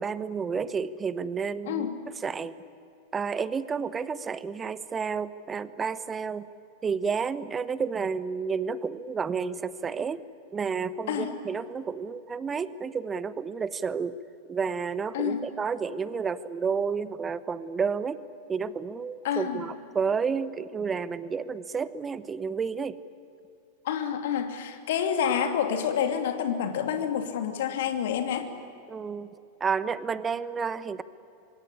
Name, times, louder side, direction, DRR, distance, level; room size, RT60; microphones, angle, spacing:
voice 1, 0.0-1.9 2.2-2.5 3.1-6.5 6.8-10.2 10.5-14.2 14.5-18.2 18.5-23.0 28.9-29.3 29.6-31.0, right 5 dB, 20° right, 17 dB, 1.0 m, -31 dB
voice 2, 1.6-2.0 11.1-11.3 15.1-15.4 19.2-19.6 23.8-28.5, left 8 dB, 55° left, 7 dB, 2.7 m, -28 dB
24.5 x 24.5 x 9.9 m, 2.7 s
figure-of-eight pair, 90°, 0 cm